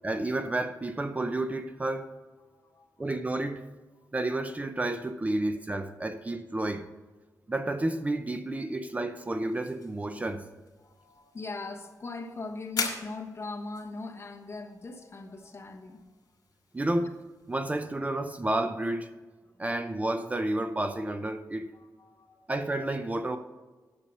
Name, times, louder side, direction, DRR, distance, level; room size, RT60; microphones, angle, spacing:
voice 1, 0.0-2.1 3.0-3.6 4.1-6.9 7.5-10.4 16.7-17.1 17.5-19.1 19.6-21.7 22.5-23.4, right 2 dB, 20° right, 0.6 m, -30 dB
voice 2, 2.4-3.1 10.8-16.1 21.7-22.4, left 3 dB, 40° left, 1.1 m, -41 dB
sound 1, 9.2-17.7, left 4 dB, 70° left, 2.3 m, -42 dB
10.5 x 6.8 x 5.6 m
wide cardioid pair, 125°, 7 cm